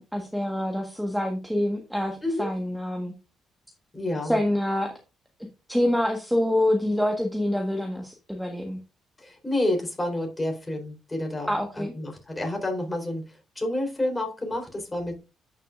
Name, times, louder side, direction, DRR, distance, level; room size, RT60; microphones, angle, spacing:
voice 1, 0.0-3.1 4.2-4.9 5.7-8.8 11.5-11.9, left 1 dB, ahead, 2 dB, 1.4 m, -26 dB
voice 2, 3.9-4.4 9.2-15.2, left 1 dB, 15° left, 3 dB, 3.8 m, -29 dB
11.0 x 6.5 x 2.5 m, 0.29 s
cardioid pair, 90°, 0 cm